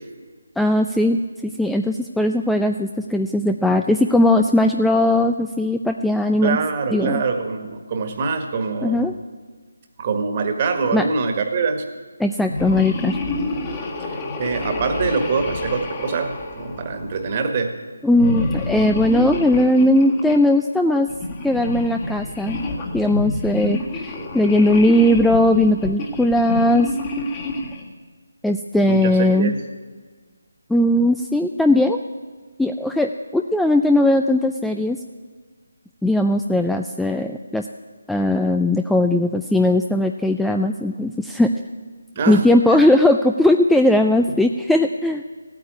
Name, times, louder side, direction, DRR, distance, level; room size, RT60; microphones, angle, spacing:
voice 1, 0.6-6.6 6.9-7.2 8.8-9.1 10.9-11.1 12.2-13.2 18.0-21.1 21.4-22.6 22.9-26.9 28.4-29.5 30.7-32.0 32.6-35.0 36.0-37.7 38.1-41.5 42.3-45.2, left 1 dB, ahead, 5 dB, 0.3 m, -18 dB
voice 2, 6.4-9.2 10.0-11.8 14.0-17.8 28.9-29.6 42.1-42.4, right 4 dB, 30° right, 6 dB, 1.6 m, -24 dB
sound 1, 12.4-17.3 18.1-20.4 21.1-27.9, left 2 dB, 25° left, 1.7 m, -28 dB
15.5 x 9.0 x 9.5 m, 1.5 s
figure-of-eight pair, 155°, 0 cm